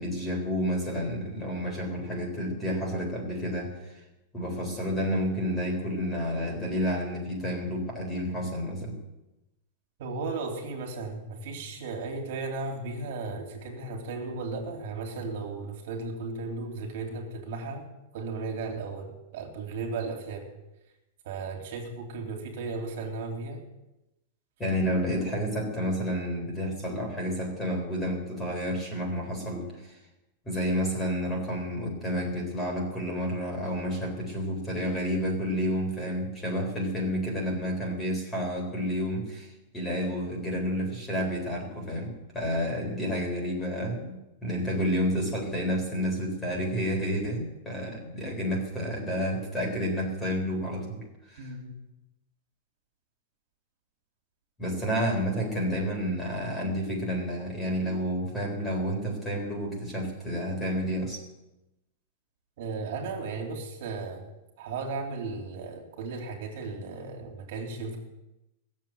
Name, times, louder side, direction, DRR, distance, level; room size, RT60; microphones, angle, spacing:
voice 1, 0.0-4.0 4.3-9.0 24.6-30.0 30.4-44.1 44.4-51.5 54.6-61.2, equal, 10° left, 1 dB, 4.1 m, -30 dB
voice 2, 10.0-17.9 18.1-20.5 21.2-23.6 51.4-51.7 62.6-64.3 64.6-68.0, right 3 dB, 55° right, 3 dB, 3.2 m, -35 dB
18.0 x 7.6 x 9.2 m, 0.95 s
supercardioid pair, 170°, 0 cm